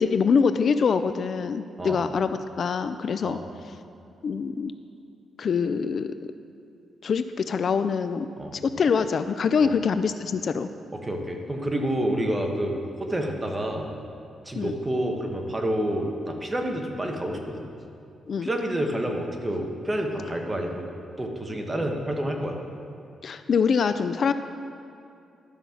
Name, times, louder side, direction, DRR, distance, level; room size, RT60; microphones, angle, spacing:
voice 1, 0.0-3.4 4.2-4.7 5.4-6.1 7.0-8.3 8.5-10.7 14.5-14.7 18.3-18.5 23.2-24.3, left 6 dB, 55° left, 11 dB, 0.4 m, -24 dB
voice 2, 10.9-13.9 14.4-17.6 18.4-20.9 21.2-22.6, right 1 dB, 20° right, 2 dB, 1.4 m, -28 dB
12.5 x 5.6 x 7.1 m, 2.6 s
cardioid pair, 100°, 0 cm